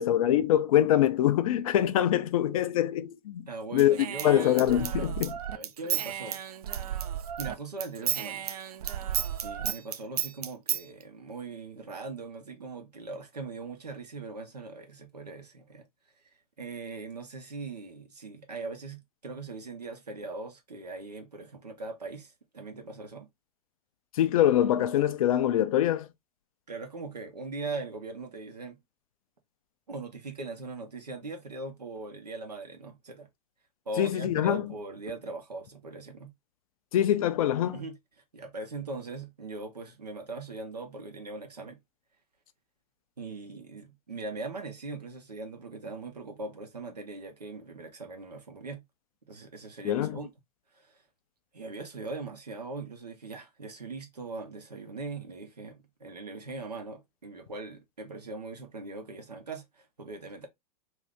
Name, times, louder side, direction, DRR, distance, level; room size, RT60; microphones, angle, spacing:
voice 1, 0.0-3.5 3.7-4.0 4.2-5.3 24.2-26.1 34.0-34.6 36.9-37.8 49.8-50.2, left 11 dB, 60° left, 0.5 m, -24 dB
voice 2, 3.5-4.5 4.8-5.2 5.5-6.4 6.7-6.9 7.4-8.5 9.4-15.9 16.6-23.3 26.7-28.8 29.9-33.3 33.9-36.3 37.7-38.0 38.3-41.8 43.2-48.8 49.3-50.3 50.7-51.0 51.5-60.5, right 3 dB, 85° right, 0.9 m, -40 dB
Human voice / Scissors, 3.8-7.5 7.8-10.8, right 10 dB, 70° right, 0.5 m, -33 dB
2.7 x 2.6 x 3.4 m
figure-of-eight pair, 95°, 20 cm